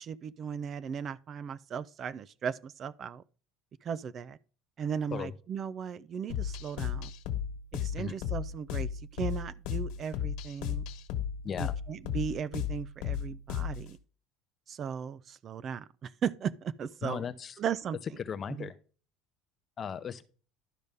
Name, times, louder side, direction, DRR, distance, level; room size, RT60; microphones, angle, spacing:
voice 1, 0.0-3.2 3.8-4.4 4.8-7.1 7.7-10.9 11.6-14.0 14.7-17.2 17.6-18.0 18.6-18.7, right 7 dB, 30° right, 0.4 m, -36 dB
sound 1, 6.3-13.9, left 9 dB, 60° left, 1.3 m, -34 dB
voice 2, 11.4-11.8 17.0-17.6 18.2-18.8 19.8-20.3, left 7 dB, 25° left, 0.6 m, -37 dB
12.0 x 5.4 x 3.5 m
cardioid pair, 165°, 0 cm